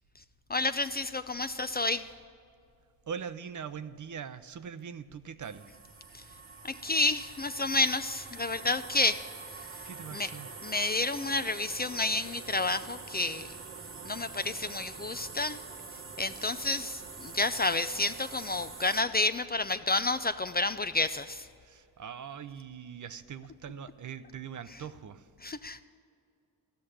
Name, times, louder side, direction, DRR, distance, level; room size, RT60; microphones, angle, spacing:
voice 1, 0.5-2.1 6.1-6.2 6.6-9.2 9.6-9.7 10.1-10.3 10.6-13.6 14.0-15.6 16.2-21.5 25.4-25.8, left 2 dB, 25° left, 11 dB, 0.4 m, -30 dB
voice 2, 3.1-5.8 9.8-10.5 21.6-25.3, right 7 dB, 45° right, 12 dB, 0.7 m, -42 dB
sound 1, 5.4-19.0, right 4 dB, 30° right, 1.1 m, -45 dB
14.5 x 6.3 x 10.0 m, 2.3 s
cardioid pair, 60°, 40 cm